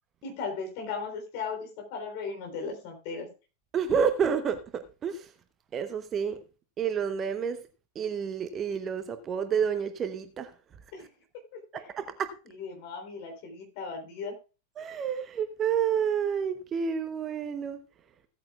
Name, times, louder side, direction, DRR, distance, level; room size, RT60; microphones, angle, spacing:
voice 1, 0.2-3.3 10.9-11.1 11.5-11.9 12.4-14.3, left 5 dB, 45° left, 3.5 m, -37 dB
voice 2, 3.7-5.3 5.7-6.4 6.8-7.6 7.9-10.5 11.7-12.3 14.8-17.8, right 7 dB, 25° right, 0.9 m, -29 dB
16.5 x 8.6 x 2.4 m
figure-of-eight pair, 90°, 0 cm